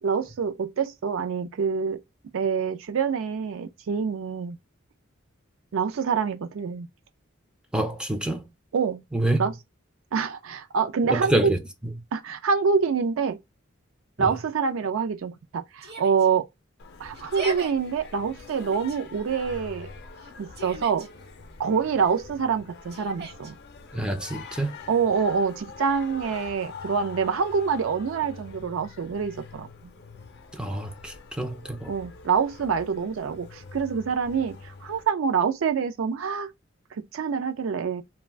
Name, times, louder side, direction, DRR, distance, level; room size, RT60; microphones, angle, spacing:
voice 1, 0.0-2.0 2.3-4.6 5.7-6.9 8.7-9.0 9.4-9.5 10.1-11.5 12.1-13.4 14.2-16.5 17.0-19.9 20.4-21.1 21.6-23.6 24.9-29.9 31.9-36.5 36.9-38.0, right 6 dB, 75° right, 0.4 m, -26 dB
voice 2, 7.7-8.5 9.1-9.5 11.0-11.6 14.2-14.3 23.9-24.8 30.5-31.9, right 1 dB, 5° right, 0.3 m, -27 dB
Yell, 15.8-16.3 17.1-17.7 18.5-19.0 20.2-21.1 22.9-23.5, right 2 dB, 55° right, 0.8 m, -38 dB
Singing, 16.8-35.0, left 4 dB, 55° left, 0.5 m, -44 dB
2.4 x 2.1 x 3.2 m
head